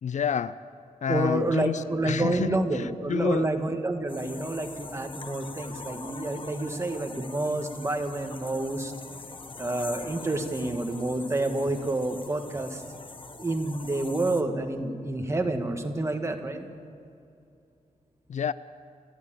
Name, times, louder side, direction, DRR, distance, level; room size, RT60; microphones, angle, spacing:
voice 1, 0.0-0.6 1.0-3.5 18.3-18.5, left 7 dB, 60° left, 16 dB, 0.5 m, -29 dB
voice 2, 1.1-8.9 9.6-12.8 13.4-16.7, right 2 dB, 20° right, 4 dB, 1.6 m, -29 dB
sound 1, 4.1-14.4, left 3 dB, 40° left, 1.3 m, -43 dB
29.0 x 11.5 x 8.8 m, 2.6 s
wide cardioid pair, 145°, 14 cm